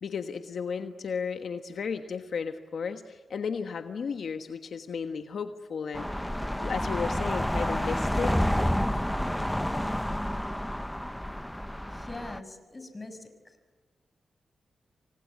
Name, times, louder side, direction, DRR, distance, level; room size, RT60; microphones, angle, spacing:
voice 1, 0.0-6.3 6.6-8.5, left 6 dB, 70° left, 7 dB, 1.3 m, -34 dB
sound 1, 5.9-12.4, equal, 5° left, 0.9 m, -29 dB
voice 2, 11.9-13.6, left 2 dB, 25° left, 9 dB, 5.9 m, -43 dB
29.0 x 24.5 x 8.6 m, 1.4 s
cardioid pair, 70°, 0 cm